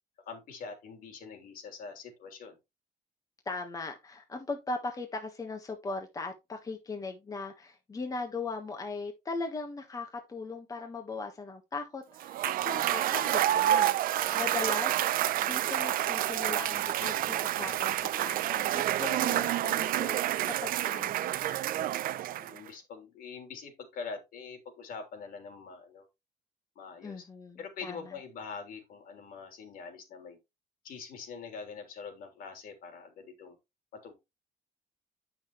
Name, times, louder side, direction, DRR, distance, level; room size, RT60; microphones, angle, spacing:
voice 1, 0.2-2.6 14.2-14.6 22.3-26.1 26.7-27.2 27.6-30.4 30.8-33.6 33.9-34.1, left 5 dB, 70° left, 3.5 m, -44 dB
voice 2, 3.4-12.4 12.6-14.9 15.4-21.9 27.0-28.0, left 3 dB, 25° left, 1.3 m, -39 dB
Cheering / Applause / Crowd, 12.2-22.7, right 13 dB, 70° right, 0.6 m, -29 dB
9.5 x 6.0 x 3.1 m
cardioid pair, 140°, 15 cm